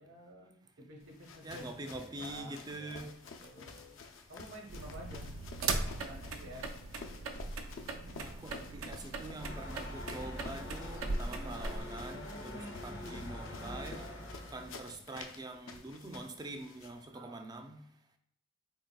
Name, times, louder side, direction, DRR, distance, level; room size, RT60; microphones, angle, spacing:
voice 1, 0.0-3.1 3.4-5.3 6.0-6.7 17.1-17.5, equal, 65° right, 0.9 m, -51 dB
sound 1, 1.0-17.0, left 4 dB, 70° left, 0.5 m, -51 dB
voice 2, 1.4-3.1 8.2-14.2 14.5-17.8, right 2 dB, 20° right, 0.3 m, -45 dB
sound 2, 4.7-11.8, right 3 dB, 80° right, 0.5 m, -39 dB
sound 3, 9.4-14.7, left 1 dB, 90° left, 1.4 m, -44 dB
3.9 x 3.8 x 2.2 m
head